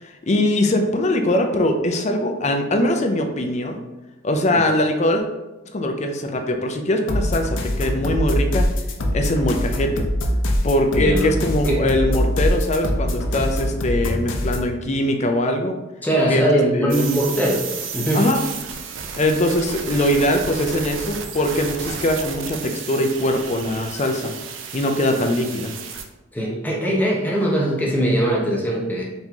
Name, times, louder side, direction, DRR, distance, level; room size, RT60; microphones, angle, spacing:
voice 1, 0.3-3.8 4.2-5.2 5.7-8.7 9.1-10.0 10.6-15.8 16.3-16.4 16.7-17.1 18.1-18.4 19.2-24.3 24.7-25.7, left 1 dB, 40° left, 5 dB, 0.5 m, -21 dB
sound 1, 7.1-14.7, left 1 dB, 85° left, 0.6 m, -23 dB
voice 2, 11.0-11.3 11.7-11.9 16.0-17.6 17.9-18.3 26.3-29.1, right 1 dB, 10° left, -2 dB, 0.7 m, -21 dB
sound 2, 16.9-26.0, right 5 dB, 90° right, 0.5 m, -32 dB
4.1 x 3.0 x 3.5 m, 1.0 s
head